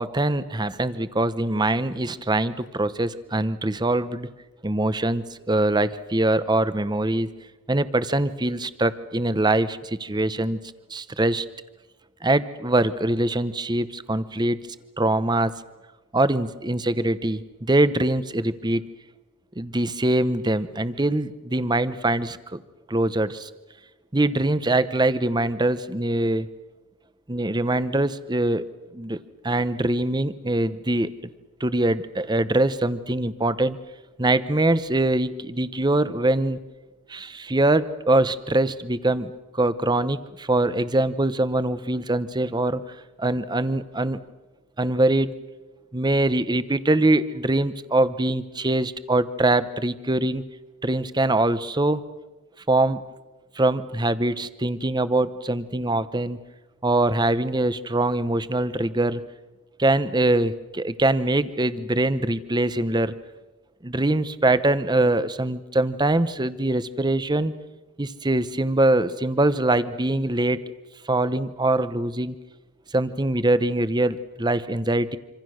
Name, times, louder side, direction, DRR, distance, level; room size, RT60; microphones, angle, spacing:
voice 1, 0.0-4.3 4.6-7.3 7.7-10.6 10.9-11.4 12.2-14.6 15.0-15.5 16.1-18.8 19.6-22.6 22.9-23.5 24.1-26.5 27.3-28.6 28.9-29.2 29.4-31.1 31.6-33.8 34.2-36.6 37.1-42.8 43.2-44.2 44.8-45.3 45.9-50.4 50.8-52.0 52.7-53.0 53.6-56.4 56.8-59.2 59.8-63.1 63.8-67.5 68.0-70.6 71.1-72.4 72.9-75.2, right 2 dB, 20° right, 14 dB, 0.9 m, -23 dB
26.5 x 26.5 x 6.4 m, 1.2 s
head